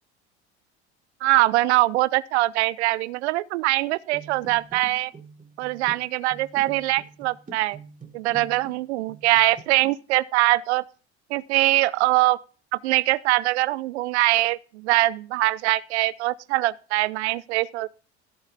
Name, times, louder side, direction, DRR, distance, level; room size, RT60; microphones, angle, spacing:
voice 1, 1.2-5.1 5.6-7.8 8.1-10.8 11.3-12.4 12.7-17.9, right 18 dB, 75° right, 0.5 m, -22 dB
sound 1, 4.1-8.8 9.1-9.9, right 4 dB, 25° right, 2.6 m, -45 dB
15.5 x 5.6 x 5.7 m
hypercardioid pair, 75°, 34 cm